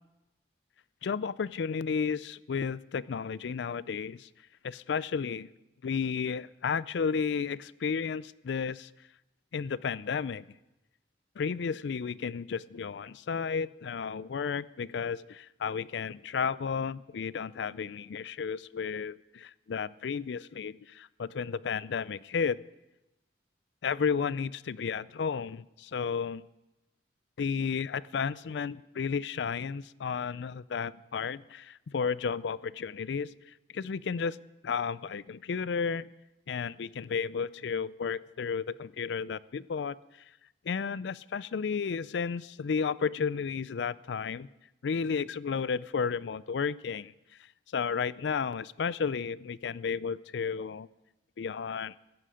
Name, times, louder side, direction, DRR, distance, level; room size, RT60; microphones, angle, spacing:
voice 1, 1.0-4.3 4.6-5.5 5.8-8.9 9.5-10.5 11.4-22.6 23.8-26.4 27.4-33.3 33.7-34.4 34.6-36.1 36.5-40.0 40.6-44.5 44.8-47.1 47.7-50.9 51.4-52.0, left 6 dB, 80° left, 19 dB, 0.4 m, -32 dB
15.5 x 13.0 x 5.0 m, 0.96 s
head